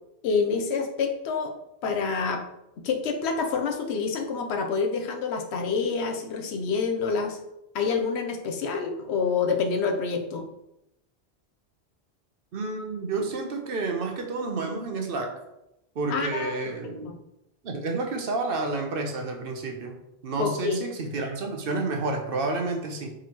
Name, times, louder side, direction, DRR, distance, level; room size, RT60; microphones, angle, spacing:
voice 1, 0.2-1.5 1.8-2.4 2.8-7.4 7.7-10.4 16.1-17.2 20.4-20.8, left 5 dB, 80° left, 4 dB, 0.9 m, -27 dB
voice 2, 12.5-15.4 16.0-17.1 17.6-20.0 20.2-23.1, right 3 dB, 60° right, 3 dB, 0.8 m, -30 dB
4.8 x 3.7 x 2.9 m, 0.86 s
omnidirectional pair, 1.1 m